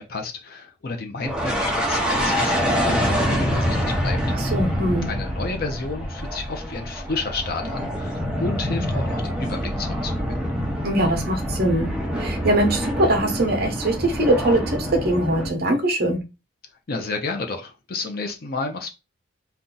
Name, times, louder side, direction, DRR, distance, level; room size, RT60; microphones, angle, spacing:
voice 1, 0.0-4.5 5.1-10.4 16.9-18.9, left 3 dB, 45° left, 0.5 m, -31 dB
sound 1, 1.2-15.5, equal, 5° right, 0.5 m, -26 dB
voice 2, 4.3-5.1 10.8-11.9 12.2-16.2, right 1 dB, 45° right, 0.8 m, -22 dB
2.6 x 2.2 x 3.8 m
head